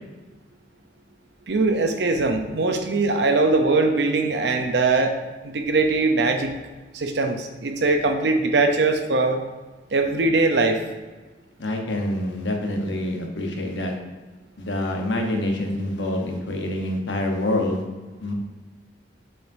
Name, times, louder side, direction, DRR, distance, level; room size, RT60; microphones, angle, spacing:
voice 1, 1.5-5.2 5.4-6.5 6.9-9.4 9.9-10.8, right 3 dB, 65° right, 5 dB, 0.7 m, -21 dB
voice 2, 11.6-13.9 14.6-17.8 18.2-18.3, left 1 dB, 80° left, 2 dB, 1.0 m, -26 dB
7.6 x 5.0 x 2.7 m, 1.2 s
head